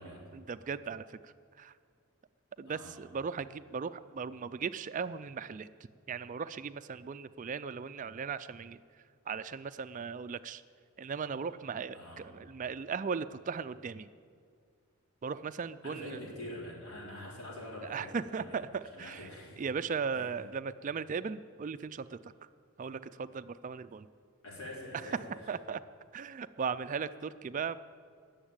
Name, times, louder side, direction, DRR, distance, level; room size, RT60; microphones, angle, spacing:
voice 1, 0.3-1.7 2.6-5.7 6.1-8.8 9.3-10.6 11.0-14.1 15.2-16.2 17.9-19.3 19.6-22.2 22.8-24.1 25.5-25.8 26.1-27.8, right 6 dB, 35° right, 13 dB, 0.3 m, -37 dB
voice 2, 2.7-3.0 11.9-12.3 15.8-18.6 18.9-19.6 20.1-20.3 24.4-25.5, left 1 dB, 70° left, -3 dB, 4.2 m, -45 dB
19.0 x 7.2 x 8.8 m, 2.1 s
head